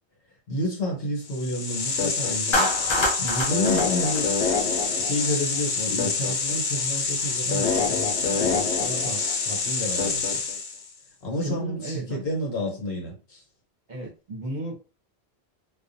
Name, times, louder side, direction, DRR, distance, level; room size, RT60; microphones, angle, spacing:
voice 1, 0.5-4.3 5.0-10.4 11.2-13.4, equal, 70° left, 1.2 m, -31 dB
sound 1, 1.3-10.9, left 5 dB, 90° left, 0.9 m, -26 dB
Clapping, 2.5-4.9, left 1 dB, 40° left, 0.4 m, -27 dB
voice 2, 11.4-12.2 13.9-14.8, right 1 dB, 45° right, 0.8 m, -33 dB
2.4 x 2.2 x 2.6 m
omnidirectional pair, 1.1 m